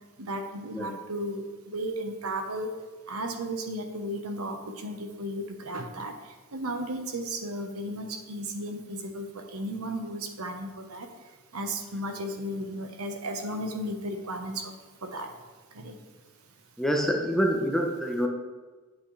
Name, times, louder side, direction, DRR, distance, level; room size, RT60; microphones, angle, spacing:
voice 1, 0.2-2.7 3.1-6.1 6.5-11.1 11.5-14.7 15.0-15.3 15.7-15.9, right 1 dB, 75° right, 5 dB, 1.0 m, -34 dB
voice 2, 16.8-18.3, equal, ahead, 1 dB, 0.8 m, -26 dB
9.0 x 8.3 x 3.3 m, 1.3 s
head